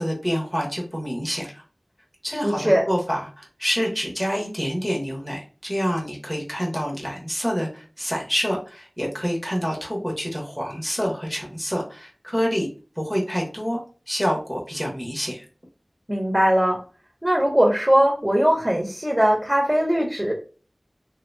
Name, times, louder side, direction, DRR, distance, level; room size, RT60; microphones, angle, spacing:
voice 1, 0.0-1.6 2.2-12.7 13.0-13.8 14.1-15.4, equal, 5° left, -2 dB, 1.3 m, -27 dB
voice 2, 2.4-2.8 16.1-16.8 17.2-20.3, equal, 15° right, 0 dB, 1.0 m, -20 dB
3.5 x 2.8 x 2.3 m, 0.36 s
wide cardioid pair, 50°, 0 cm